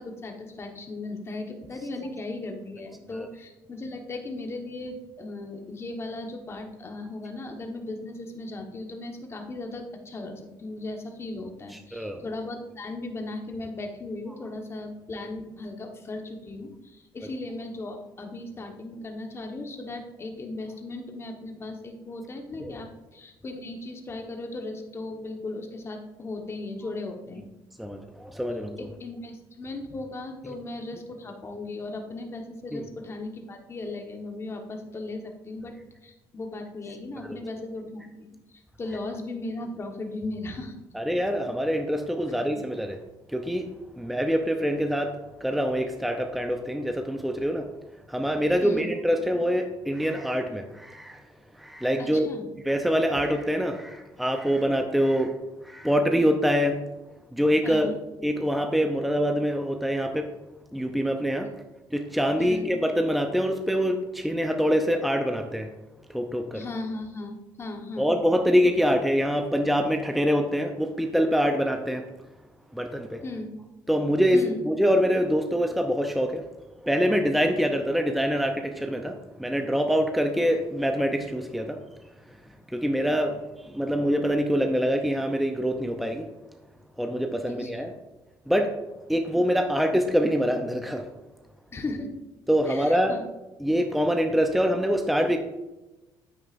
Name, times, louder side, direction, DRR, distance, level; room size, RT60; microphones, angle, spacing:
voice 1, 0.0-27.4 28.8-35.7 36.0-40.7 42.5-42.6 48.6-48.9 52.0-52.5 57.6-58.0 62.4-62.6 66.5-68.1 73.2-73.5 74.3-74.6 87.5-87.8 91.7-92.1 92.6-93.2, left 2 dB, 30° left, 3 dB, 1.4 m, -37 dB
voice 2, 11.9-12.2 22.6-22.7 27.8-28.9 32.7-32.8 37.3-37.4 40.9-43.0 43.3-43.7 44.0-47.7 48.1-51.2 51.5-52.3 52.6-55.3 55.6-56.8 57.3-57.9 58.2-60.3 60.7-61.5 61.9-65.7 66.1-66.6 68.0-72.1 72.7-73.2 73.9-74.4 74.6-76.5 76.8-81.8 82.7-86.3 87.0-87.9 88.5-88.7 89.1-91.0 92.5-93.2 93.6-95.4, equal, ahead, 5 dB, 0.6 m, -25 dB
9.4 x 8.6 x 2.6 m, 1.0 s
cardioid pair, 115°, 9 cm